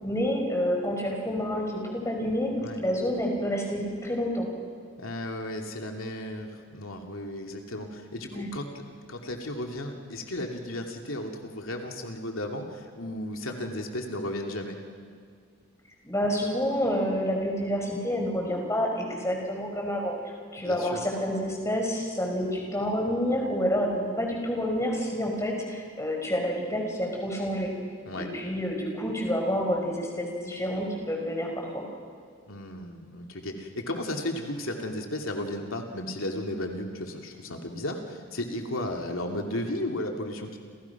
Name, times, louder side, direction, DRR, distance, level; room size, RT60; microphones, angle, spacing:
voice 1, 0.0-4.5 8.3-8.5 16.0-20.1 20.5-27.7 28.1-31.9, equal, 15° left, 0 dB, 5.4 m, -28 dB
voice 2, 5.0-8.8 9.1-14.8 20.6-21.0 28.1-28.3 32.5-40.6, left 1 dB, 85° left, 2 dB, 2.8 m, -34 dB
29.5 x 29.5 x 6.1 m, 2.2 s
head